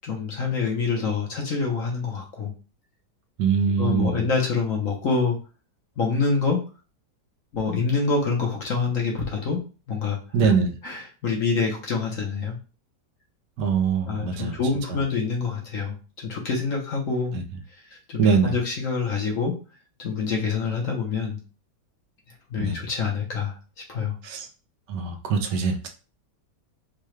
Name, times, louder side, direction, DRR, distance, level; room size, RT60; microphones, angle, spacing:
voice 1, 0.0-2.5 3.8-5.4 6.0-6.6 7.5-9.6 9.9-10.2 10.4-10.5 10.8-12.6 14.1-17.3 18.1-19.5 20.0-21.4 22.5-23.5 23.9-24.2, left 4 dB, 55° left, -1 dB, 1.1 m, -26 dB
voice 2, 3.4-4.2 10.3-10.7 13.6-14.6 14.9-15.0 17.3-17.4 18.2-18.5 22.6-22.8 24.2-24.5 24.9-25.9, right 6 dB, 75° right, 4 dB, 1.3 m, -23 dB
4.7 x 2.3 x 3.1 m, 0.36 s
omnidirectional pair, 1.9 m